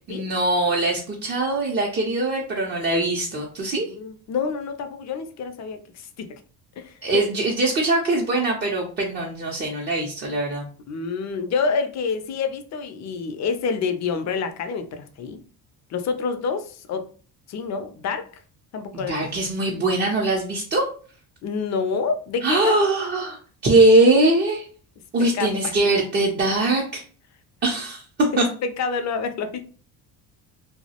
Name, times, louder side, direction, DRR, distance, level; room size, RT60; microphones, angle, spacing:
voice 1, 0.1-3.9 7.0-10.7 18.9-20.9 22.4-24.7 25.1-27.0 27.6-28.0 28.4-28.5, right 2 dB, 25° right, -2 dB, 0.5 m, -21 dB
voice 2, 3.8-6.4 6.8-7.2 10.9-15.4 15.9-17.1 17.5-18.3 18.7-19.3 21.4-22.7 25.2-25.8 28.3-29.6, left 5 dB, 45° left, 8 dB, 0.4 m, -28 dB
2.2 x 2.0 x 2.8 m, 0.41 s
cardioid pair, 100°, 40 cm